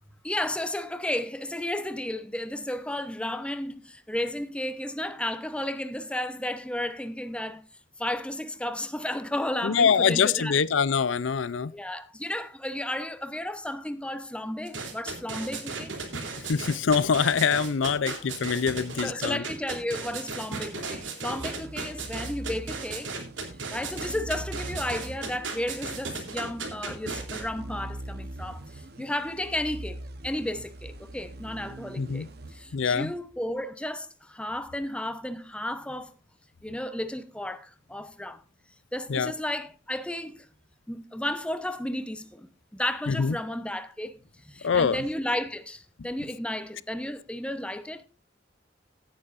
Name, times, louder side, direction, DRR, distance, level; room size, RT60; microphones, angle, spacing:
voice 1, 0.2-7.6 8.0-10.6 11.7-16.0 19.0-23.1 23.7-36.1 36.6-38.4 38.9-40.5 40.9-42.5 42.7-44.2 44.4-48.1, left 1 dB, 5° left, 0.8 m, -33 dB
voice 2, 9.6-11.7 16.5-19.4 32.0-32.3 32.7-33.1 39.1-39.3 43.1-43.4 44.6-45.0, left 6 dB, 85° left, 0.5 m, -24 dB
sound 1, 14.7-27.4, right 4 dB, 80° right, 3.1 m, -35 dB
sound 2, 21.4-33.2, right 1 dB, 55° right, 1.0 m, -42 dB
16.5 x 9.6 x 2.5 m
head